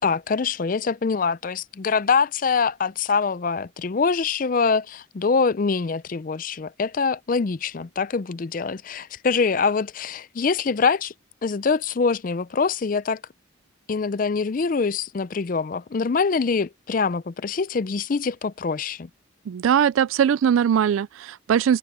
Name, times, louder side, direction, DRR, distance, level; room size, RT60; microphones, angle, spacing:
voice 1, 0.0-11.1 11.4-13.2 13.9-19.1, left 5 dB, 40° left, 0.4 m, -24 dB
voice 2, 19.5-21.8, right 8 dB, 80° right, 0.3 m, -20 dB
head